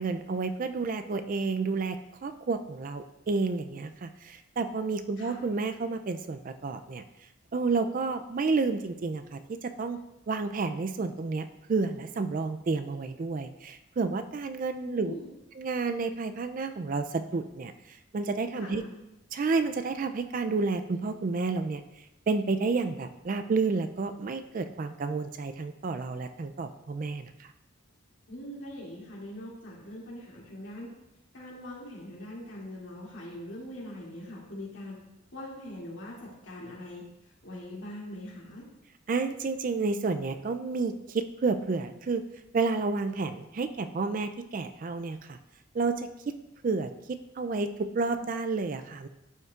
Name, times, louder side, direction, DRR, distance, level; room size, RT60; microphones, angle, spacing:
voice 1, 0.0-7.0 7.5-10.0 10.3-15.1 15.5-18.8 19.3-21.8 22.3-27.5 39.1-42.2 42.5-45.4 45.7-46.3 46.6-47.7 47.9-49.1, right 4 dB, 40° right, 9 dB, 0.3 m, -30 dB
voice 2, 14.8-15.3 18.6-19.0 28.3-30.9 31.3-34.9 35.3-37.0 37.4-38.6, left 1 dB, 65° left, -5 dB, 2.5 m, -42 dB
12.0 x 5.4 x 2.4 m, 0.91 s
head